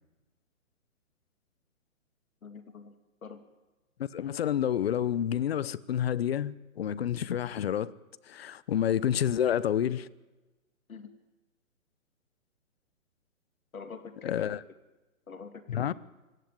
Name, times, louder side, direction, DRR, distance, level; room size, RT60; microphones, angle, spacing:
voice 1, 2.4-3.0 3.2-3.4 10.9-11.1 13.7-14.5 15.3-15.9, left 5 dB, 80° left, 3.0 m, -45 dB
voice 2, 4.1-7.9 8.3-10.1 14.2-14.6 15.7-15.9, left 10 dB, 45° left, 0.9 m, -29 dB
25.0 x 16.0 x 9.5 m
hypercardioid pair, 155°, 41 cm